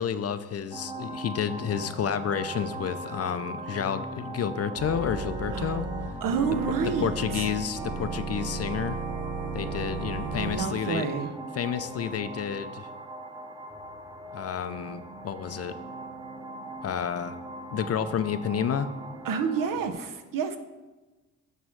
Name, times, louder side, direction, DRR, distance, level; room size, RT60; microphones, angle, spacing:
voice 1, 0.0-5.9 6.8-9.0 9.5-11.1 11.5-12.9 14.3-15.8 16.8-17.4 17.7-18.9, left 8 dB, 45° left, 12 dB, 0.5 m, -30 dB
sound 1, 0.7-19.9, right 2 dB, 15° right, 0.8 m, -40 dB
Organ, 4.8-10.6, right 3 dB, 45° right, 1.6 m, -34 dB
voice 2, 6.2-7.1 7.3-7.4 10.4-11.3 19.2-20.6, right 6 dB, 70° right, 7 dB, 0.8 m, -29 dB
9.2 x 3.1 x 6.2 m, 1.2 s
cardioid pair, 90°, 34 cm